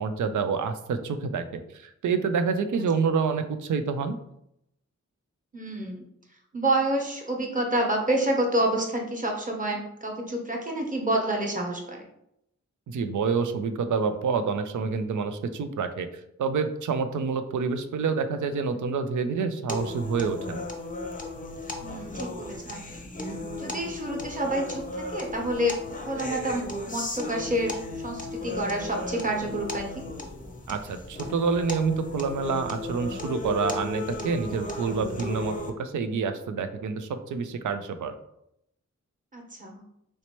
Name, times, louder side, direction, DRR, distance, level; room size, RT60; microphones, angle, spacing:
voice 1, 0.0-4.2 12.9-16.1 16.4-20.6 30.7-38.1, right 5 dB, 75° right, 9 dB, 0.4 m, -28 dB
voice 2, 5.5-6.0 6.5-12.0 21.8-23.0 23.6-27.8 28.0-30.0 39.3-39.8, right 1 dB, 25° right, 0 dB, 1.0 m, -28 dB
sound 1, 19.7-35.7, left 2 dB, 25° left, 0.6 m, -35 dB
3.2 x 2.8 x 3.0 m, 0.78 s
cardioid pair, 45°, 30 cm